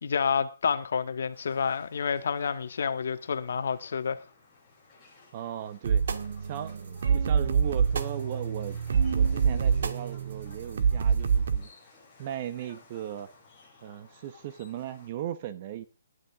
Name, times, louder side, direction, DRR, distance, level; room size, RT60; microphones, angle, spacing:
voice 1, 0.0-4.2, left 6 dB, 55° left, 1.7 m, -29 dB
sound 1, 1.3-15.1, left 3 dB, 5° left, 6.7 m, -57 dB
voice 2, 5.3-6.0 6.4-8.8 9.1-11.7 12.2-13.3 13.8-15.9, right 11 dB, 30° right, 0.9 m, -37 dB
sound 2, 5.8-11.6, right 6 dB, 55° right, 1.8 m, -26 dB
19.5 x 11.0 x 3.5 m
hypercardioid pair, 175°, 0 cm